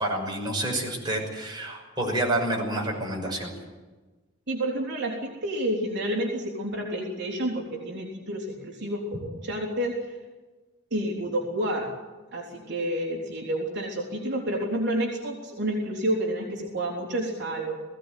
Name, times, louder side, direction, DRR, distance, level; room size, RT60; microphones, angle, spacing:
voice 1, 0.0-3.5, right 1 dB, 20° right, -1 dB, 6.1 m, -28 dB
voice 2, 4.5-10.0 10.9-11.9 12.3-17.7, right 1 dB, 55° right, -1 dB, 3.8 m, -29 dB
20.0 x 17.0 x 9.2 m, 1.2 s
head